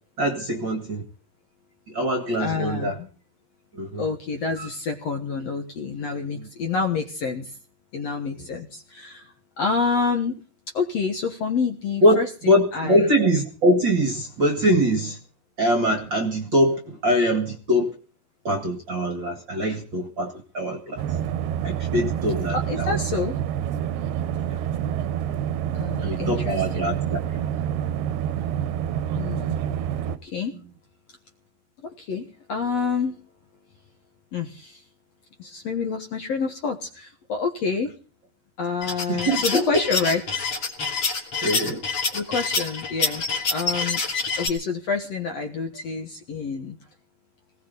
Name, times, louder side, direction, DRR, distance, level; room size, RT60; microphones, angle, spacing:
voice 1, 0.2-1.0 1.9-2.9 3.8-4.0 12.0-12.2 12.4-15.2 15.6-17.9 18.4-21.0 21.6-22.9 26.0-27.2 39.1-39.6 41.4-41.8, equal, 40° right, 6 dB, 1.8 m, -23 dB
voice 2, 2.4-3.1 4.0-7.6 7.9-10.4 10.7-13.1 22.5-23.3 25.7-27.0 29.1-29.6 30.1-30.5 31.8-33.2 34.3-34.8 35.4-37.9 38.6-40.2 41.1-41.2 42.1-43.2 43.5-44.0 44.4-46.8, left 5 dB, 60° left, 5 dB, 1.9 m, -28 dB
sound 1, 21.0-30.2, right 10 dB, 85° right, 2.9 m, -27 dB
sound 2, 38.8-44.5, left 4 dB, 35° left, 3.7 m, -26 dB
19.5 x 18.0 x 4.1 m, 0.39 s
omnidirectional pair, 4.5 m